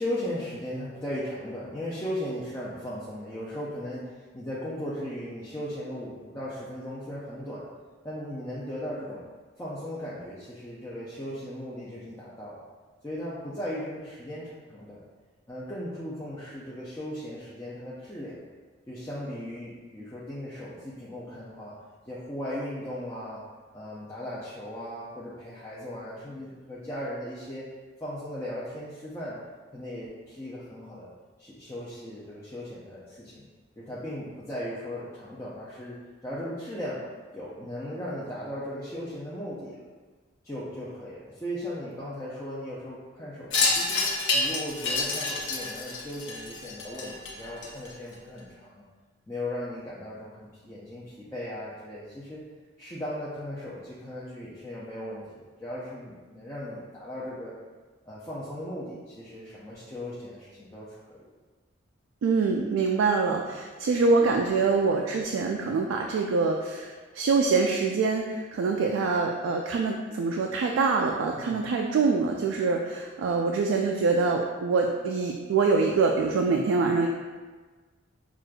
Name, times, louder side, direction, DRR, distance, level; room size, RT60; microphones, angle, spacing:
voice 1, 0.0-7.7 8.0-9.2 9.6-12.6 13.0-15.0 15.5-18.4 18.9-21.8 22.1-23.4 23.7-27.7 28.0-29.4 29.7-31.1 31.4-33.4 33.8-36.0 36.2-37.0 37.3-39.8 40.4-44.1 44.3-48.8 49.3-52.4 52.8-57.5 58.1-61.3 71.3-71.7, left 1 dB, 15° left, -9 dB, 0.4 m, -37 dB
Wind chime, 43.5-48.1, left 3 dB, 70° left, 0.7 m, -28 dB
voice 2, 62.2-77.1, right 4 dB, 85° right, 2 dB, 0.3 m, -25 dB
6.0 x 2.4 x 2.2 m, 1.4 s
head